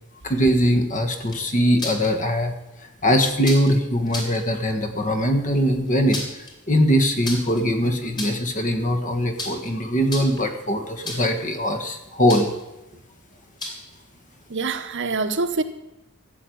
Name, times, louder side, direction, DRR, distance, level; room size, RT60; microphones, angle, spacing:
voice 1, 0.2-2.5 3.0-6.2 6.7-12.5, equal, 35° left, 6 dB, 1.7 m, -21 dB
sound 1, 1.2-2.1 3.4-3.7 4.1-4.4 5.9-6.5 7.2-7.6 8.0-8.5 9.4-9.7 10.0-10.5 11.0-11.4 12.3-12.6 13.6-14.0, left 2 dB, 20° left, 3.1 m, -32 dB
voice 2, 14.5-15.6, right 3 dB, 55° right, 9 dB, 1.0 m, -25 dB
14.0 x 8.0 x 8.7 m, 0.94 s
head